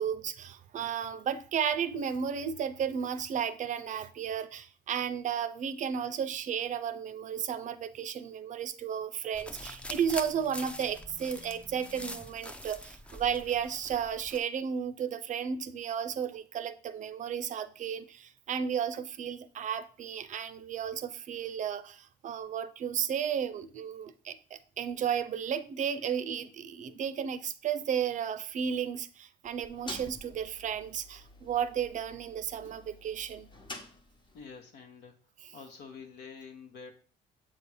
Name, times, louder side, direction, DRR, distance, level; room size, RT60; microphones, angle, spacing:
voice 1, 0.0-33.5, right 8 dB, 45° right, 0.5 m, -33 dB
sound 1, 9.3-14.4, left 1 dB, 5° left, 0.4 m, -44 dB
sound 2, 29.4-34.5, left 2 dB, 25° left, 1.0 m, -49 dB
voice 2, 34.3-35.1 35.5-36.9, left 5 dB, 75° left, 1.2 m, -47 dB
7.5 x 2.7 x 4.8 m
cardioid pair, 110°, 17 cm